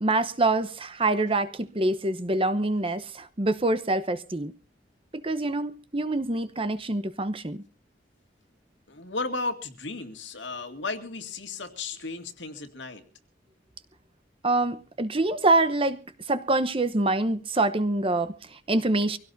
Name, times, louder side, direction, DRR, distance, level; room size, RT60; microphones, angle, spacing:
voice 1, 0.0-4.5 5.1-7.6 14.4-16.0 16.3-19.2, right 2 dB, 30° right, 0.9 m, -25 dB
voice 2, 8.9-13.0, left 3 dB, 70° left, 2.1 m, -34 dB
24.0 x 17.0 x 2.7 m
head